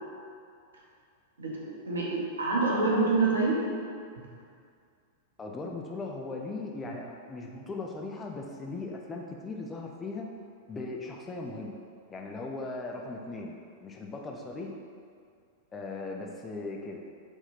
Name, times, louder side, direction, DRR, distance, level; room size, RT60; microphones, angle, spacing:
voice 1, 1.4-3.6, right 3 dB, 70° right, -4 dB, 0.6 m, -26 dB
voice 2, 5.4-10.3 10.7-11.8 12.1-14.8 15.7-17.0, left 3 dB, 15° left, 0 dB, 0.3 m, -38 dB
3.0 x 2.2 x 3.4 m, 2.2 s
figure-of-eight pair, 95°, 0 cm